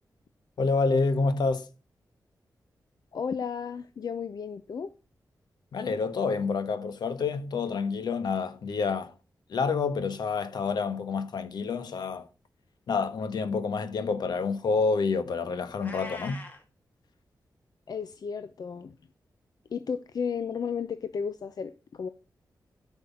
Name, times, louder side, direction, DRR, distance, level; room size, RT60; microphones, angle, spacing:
voice 1, 0.6-1.7 5.7-9.1 9.5-12.2 12.9-16.4, left 4 dB, 85° left, 1.4 m, -28 dB
voice 2, 3.1-4.9 17.9-19.0 19.7-22.1, left 6 dB, 65° left, 0.8 m, -33 dB
Meow, 15.8-16.6, left 2 dB, 25° left, 2.4 m, -42 dB
10.0 x 6.3 x 7.2 m
wide cardioid pair, 105°, 7 cm